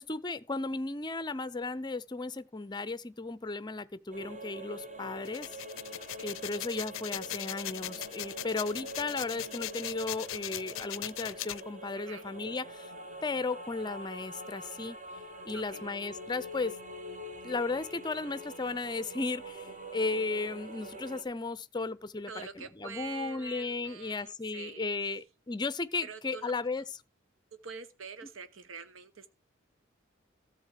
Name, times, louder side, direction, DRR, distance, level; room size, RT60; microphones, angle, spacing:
voice 1, 0.0-5.5 6.2-12.9 13.2-15.0 15.5-16.7 17.4-26.8, left 3 dB, 20° left, 0.5 m, -35 dB
sound 1, 4.1-21.2, right 1 dB, 40° right, 1.5 m, -45 dB
sound 2, 5.2-11.6, left 14 dB, 85° left, 0.5 m, -39 dB
voice 2, 15.5-16.0 22.3-25.2 26.0-26.6 27.6-29.3, right 5 dB, 85° right, 1.1 m, -46 dB
13.5 x 7.3 x 4.7 m
head